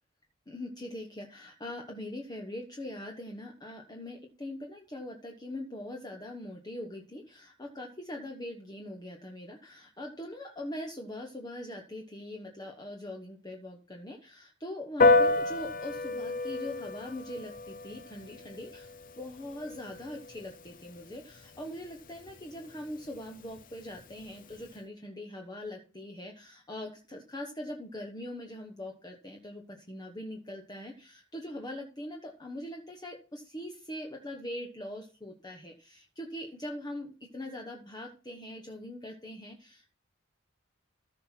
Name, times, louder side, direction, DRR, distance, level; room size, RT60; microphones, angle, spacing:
voice 1, 0.5-39.9, left 1 dB, 20° left, 2 dB, 1.2 m, -42 dB
Piano, 15.0-24.7, left 2 dB, 40° left, 0.7 m, -31 dB
14.5 x 5.9 x 4.5 m, 0.36 s
head